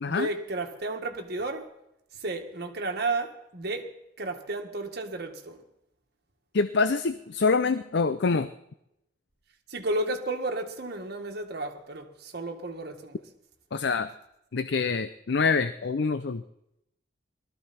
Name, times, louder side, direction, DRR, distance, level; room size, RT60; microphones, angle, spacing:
voice 1, 0.0-1.7 2.2-3.9 4.2-5.6 9.7-13.2, right 2 dB, 60° right, 1.8 m, -32 dB
voice 2, 6.5-8.5 13.7-14.1 14.5-16.4, left 4 dB, 65° left, 0.5 m, -25 dB
20.0 x 13.5 x 4.3 m
head